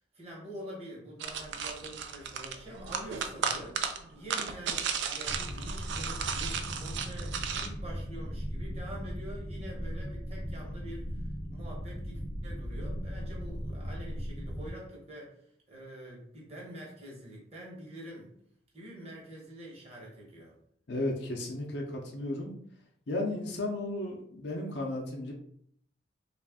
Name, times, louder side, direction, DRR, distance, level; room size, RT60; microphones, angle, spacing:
voice 1, 0.1-3.8 4.1-15.3 15.7-18.3 18.7-20.6, right 1 dB, 35° right, -4 dB, 1.1 m, -46 dB
sound 1, 1.2-7.7, right 6 dB, 65° right, 0.4 m, -35 dB
sound 2, 5.3-14.7, equal, 15° left, 0.5 m, -38 dB
voice 2, 20.9-22.5 23.1-25.3, left 1 dB, 60° left, 0 dB, 0.6 m, -34 dB
3.1 x 2.4 x 3.5 m, 0.66 s
head